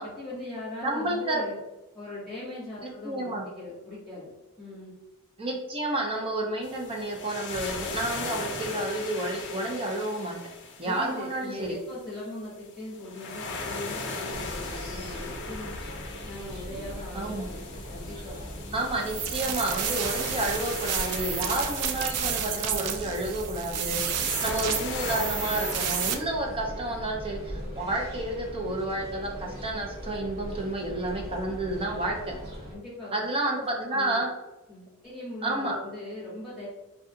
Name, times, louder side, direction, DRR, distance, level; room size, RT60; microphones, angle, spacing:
voice 1, 0.0-1.6 1.9-4.3 4.6-5.0 10.8-15.8 16.2-18.4 24.1-24.3 32.7-33.2 33.9-34.2 34.7-36.7, left 1 dB, ahead, -11 dB, 1.1 m, -40 dB
voice 2, 0.8-1.4 2.8-3.5 5.4-10.4 10.8-11.8 17.1-17.5 18.7-32.3 33.1-34.3 35.4-35.8, right 1 dB, 25° right, 1 dB, 0.6 m, -30 dB
sound 1, 6.6-26.2, left 3 dB, 55° left, 0.6 m, -39 dB
sound 2, 14.3-32.7, equal, 45° right, 1.0 m, -39 dB
sound 3, 19.0-26.1, right 8 dB, 75° right, 0.4 m, -31 dB
3.7 x 2.3 x 2.7 m, 1.0 s
head